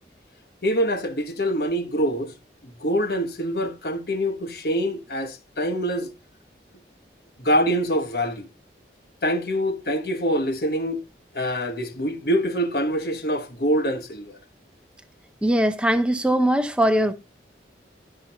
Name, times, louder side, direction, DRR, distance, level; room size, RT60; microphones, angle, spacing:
voice 1, 0.6-2.3 2.6-6.1 7.4-8.5 9.2-11.0 11.3-14.4, equal, 60° left, 1.2 m, -25 dB
voice 2, 15.4-17.1, right 1 dB, 5° right, 0.7 m, -20 dB
11.5 x 5.8 x 2.9 m
head